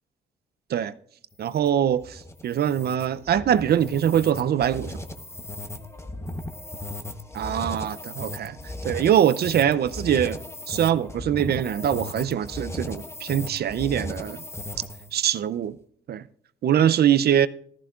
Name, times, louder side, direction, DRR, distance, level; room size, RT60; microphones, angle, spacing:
sound 1, 1.3-15.2, left 1 dB, 15° left, 1.0 m, -37 dB
voice 1, 1.4-4.9 7.3-8.6 8.8-10.4 10.7-14.4 15.1-15.8 16.1-16.2 16.6-17.5, right 10 dB, 55° right, 0.5 m, -23 dB
15.0 x 13.5 x 2.4 m
cardioid pair, 90°, 20 cm